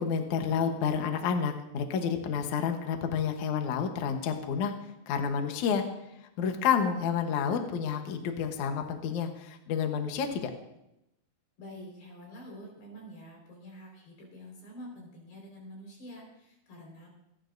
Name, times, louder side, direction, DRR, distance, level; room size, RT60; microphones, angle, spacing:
voice 1, 0.0-4.7 5.1-5.8 6.4-10.5, left 7 dB, 65° left, 5 dB, 2.1 m, -29 dB
voice 2, 11.6-17.1, equal, 85° left, -1 dB, 6.7 m, -47 dB
27.0 x 12.0 x 2.6 m, 0.86 s
omnidirectional pair, 4.5 m